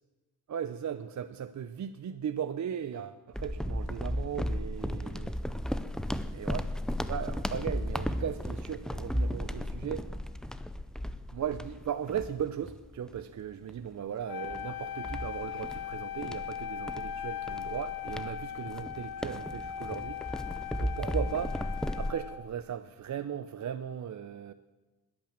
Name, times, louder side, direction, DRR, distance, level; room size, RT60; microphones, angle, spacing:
voice 1, 0.5-5.4 6.3-6.7 7.1-10.1 11.3-20.2 20.8-21.6 22.0-24.5, right 8 dB, 50° right, 10 dB, 0.6 m, -37 dB
sound 1, 3.3-13.2 13.7-13.9 14.4-22.1, equal, ahead, 0.4 m, -35 dB
Wind instrument woodwind instrument, 14.3-22.5, left 10 dB, 65° left, 0.6 m, -39 dB
21.0 x 8.8 x 7.3 m, 1.2 s
wide cardioid pair, 170°, 39 cm